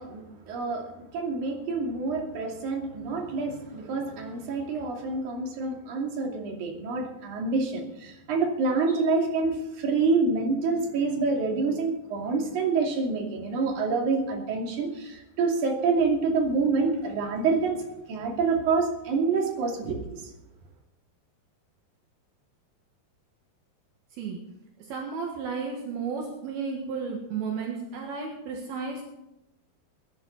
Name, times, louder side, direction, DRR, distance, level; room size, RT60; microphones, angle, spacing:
voice 1, 0.0-17.8 18.1-20.2, right 4 dB, 50° right, 0 dB, 3.8 m, -27 dB
voice 2, 24.9-29.0, right 5 dB, 70° right, 0 dB, 3.5 m, -33 dB
21.0 x 11.5 x 4.1 m, 0.89 s
omnidirectional pair, 4.6 m